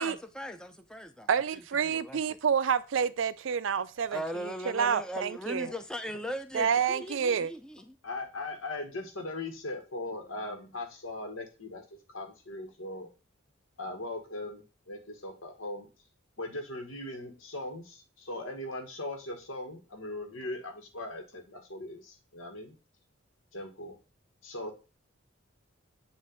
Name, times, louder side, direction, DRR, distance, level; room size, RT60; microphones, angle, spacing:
voice 1, 0.0-2.4 4.1-8.0, equal, 5° left, 0.4 m, -39 dB
voice 2, 1.3-4.2 4.7-5.7 6.5-7.5, right 7 dB, 70° right, 0.4 m, -28 dB
voice 3, 8.0-11.8 12.1-13.1 13.8-15.9 16.4-22.7 23.5-24.0 24.4-24.7, left 2 dB, 85° left, 1.5 m, -39 dB
7.4 x 2.6 x 5.1 m
head